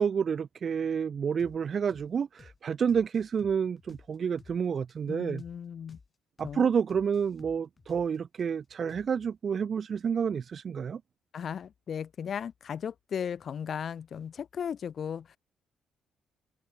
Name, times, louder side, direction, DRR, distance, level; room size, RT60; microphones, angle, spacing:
voice 1, 0.0-5.4 6.4-11.0, right 7 dB, 50° right, 0.5 m, -29 dB
sound 1, 1.4-1.6 1.9-2.1 2.4-2.6 2.9-4.6 4.9-5.0 5.4-5.6 5.9-6.1 6.4-6.6 6.9-8.4 8.9-9.3, left 4 dB, 30° left, 6.2 m, -55 dB
voice 2, 5.1-6.0 6.4-6.7 11.3-15.4, left 8 dB, 55° left, 2.1 m, -36 dB
cardioid pair, 90°, 0 cm